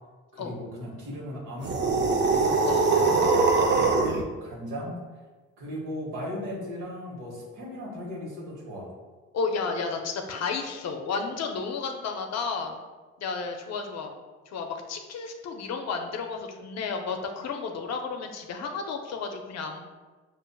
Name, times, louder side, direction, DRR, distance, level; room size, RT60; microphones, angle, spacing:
voice 1, 0.3-3.4 3.7-5.0 5.6-8.9, equal, 90° right, -2 dB, 1.1 m, -37 dB
sound 1, 1.6-4.2, right 4 dB, 35° right, 0.5 m, -22 dB
voice 2, 9.3-12.8 13.2-14.1 14.5-19.8, left 4 dB, 60° left, 4 dB, 0.5 m, -32 dB
5.1 x 2.4 x 2.2 m, 1.3 s
cardioid pair, 90°, 30 cm